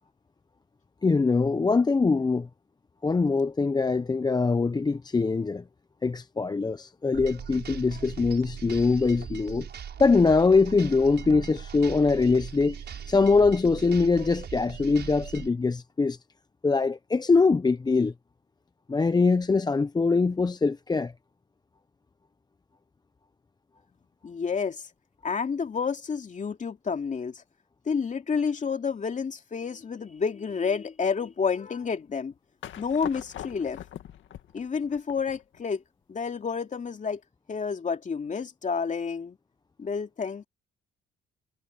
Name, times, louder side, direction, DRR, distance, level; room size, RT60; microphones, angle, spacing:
voice 1, 1.0-2.5 3.0-5.6 6.0-9.7 10.0-16.2 16.6-18.1 18.9-21.1, left 4 dB, 20° left, 0.7 m, -23 dB
sound 1, 7.1-15.5, right 8 dB, 60° right, 6.9 m, -40 dB
voice 2, 24.2-24.8 25.2-27.4 27.9-32.3 32.8-33.8 34.5-35.8 36.1-37.2 37.5-39.4 39.8-40.5, left 5 dB, 40° left, 2.5 m, -30 dB
sound 2, 32.6-35.6, left 11 dB, 75° left, 2.0 m, -42 dB
cardioid pair, 90°, 20 cm